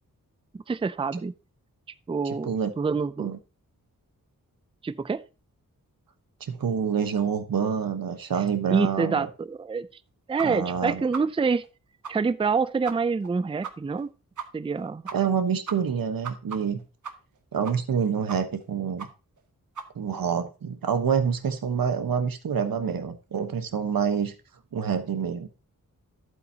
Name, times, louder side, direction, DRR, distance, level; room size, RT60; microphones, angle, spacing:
voice 1, 0.7-1.3 2.1-3.3 4.8-5.2 8.7-9.9 10.3-11.6 12.1-14.1 14.5-15.1, right 4 dB, 15° right, 0.4 m, -26 dB
voice 2, 6.4-9.3 10.4-11.0 15.1-16.8 17.5-19.1 19.9-24.3 24.7-25.5, right 7 dB, 90° right, 1.2 m, -27 dB
sound 1, 10.4-10.5 10.7-10.8 11.1-11.2 11.6-11.7 12.0-12.1 12.4-12.5 12.8-12.9 13.2-13.3 13.6-13.7 14.0-14.1 14.4-14.5 14.8-14.9 15.1-15.4 15.7-17.4 17.6-18.0 18.3-18.6 19.0-19.1 19.4-19.5 19.8-19.9, right 6 dB, 60° right, 1.2 m, -37 dB
11.5 x 8.1 x 2.8 m
wide cardioid pair, 95°, 34 cm